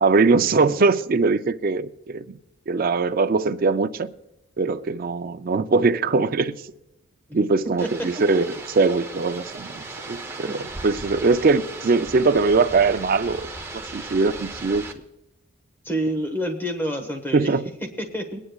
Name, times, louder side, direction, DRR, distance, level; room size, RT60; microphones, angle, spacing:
voice 1, 0.0-2.4 2.7-4.1 4.6-6.6 7.3-13.5 13.9-14.8 17.3-17.6, right 4 dB, 40° right, 0.4 m, -21 dB
sound 1, 7.8-14.9, right 3 dB, 10° right, 0.8 m, -37 dB
voice 2, 15.8-17.5 18.0-18.4, equal, 10° left, 1.3 m, -27 dB
23.0 x 9.8 x 2.4 m
head